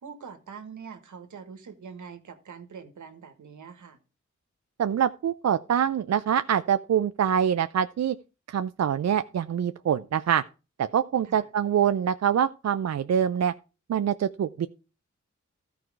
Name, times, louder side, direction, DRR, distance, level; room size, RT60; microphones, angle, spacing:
voice 1, 0.0-4.0 11.3-11.5, right 6 dB, 85° right, 8 dB, 1.4 m, -44 dB
voice 2, 4.8-8.2 8.5-10.4 10.8-13.5 13.9-14.7, right 8 dB, 65° right, 10 dB, 0.5 m, -25 dB
13.5 x 4.7 x 4.7 m, 0.31 s
cardioid pair, 55°, 29 cm